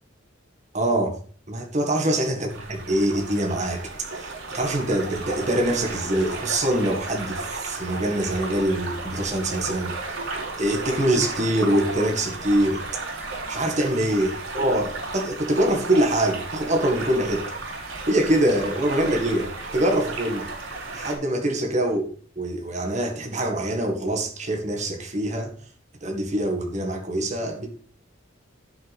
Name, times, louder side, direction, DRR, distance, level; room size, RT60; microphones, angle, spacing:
voice 1, 0.7-1.2 1.5-9.9 10.6-12.8 13.5-17.5 18.1-20.5 20.9-22.0 22.4-25.5 26.0-27.9, right 1 dB, 35° right, 1.9 m, -24 dB
sound 1, 2.5-21.2, right 3 dB, 80° right, 5.6 m, -34 dB
15.5 x 5.8 x 3.6 m
head